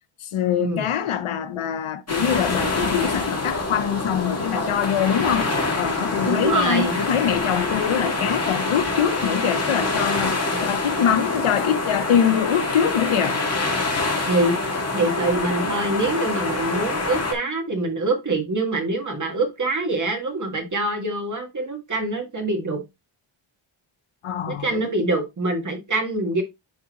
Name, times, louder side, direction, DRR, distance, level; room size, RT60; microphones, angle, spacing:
voice 1, 0.2-13.4 24.2-24.9, left 9 dB, 75° left, 0.9 m, -24 dB
sound 1, 2.1-17.3, left 3 dB, 30° left, 2.0 m, -25 dB
voice 2, 6.2-7.0 10.5-10.6 14.3-14.6 14.9-22.8 24.5-26.4, right 2 dB, 35° right, 1.9 m, -24 dB
10.5 x 3.7 x 3.0 m
wide cardioid pair, 130°, 50 cm